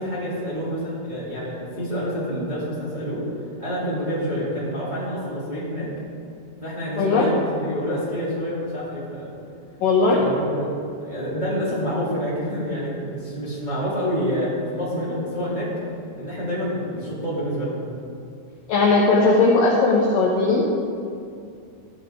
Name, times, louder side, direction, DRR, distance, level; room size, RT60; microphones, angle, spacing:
voice 1, 0.0-3.2 3.6-5.9 6.6-9.3 10.1-10.6 11.0-15.7 16.2-17.8, equal, 15° right, -10 dB, 2.3 m, -27 dB
voice 2, 7.0-7.3 9.8-10.2 18.7-20.7, left 3 dB, 75° left, -2 dB, 2.0 m, -18 dB
14.5 x 10.5 x 3.9 m, 2.4 s
omnidirectional pair, 5.3 m